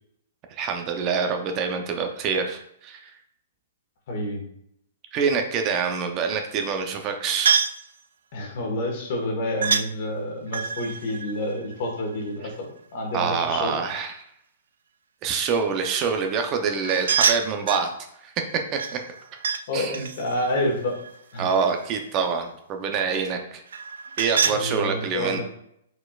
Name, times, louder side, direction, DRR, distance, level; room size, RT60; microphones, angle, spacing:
voice 1, 0.5-3.1 5.1-7.6 13.1-14.1 15.2-17.9 18.2-18.3 18.7-19.0 19.7-20.1 21.4-23.6 24.2-25.4, right 5 dB, 30° right, 5 dB, 0.6 m, -26 dB
voice 2, 4.1-4.4 8.3-13.8 19.7-21.0 21.3-21.5 24.4-25.4, left 1 dB, 50° left, 1 dB, 1.4 m, -29 dB
sound 1, 7.5-7.8 9.6-9.9 10.5-12.3 16.8-17.9 18.8-19.6 19.9-21.8 23.7-24.6, right 6 dB, 80° right, 0.3 m, -26 dB
4.4 x 4.3 x 2.4 m, 0.73 s
hypercardioid pair, 145°, 0 cm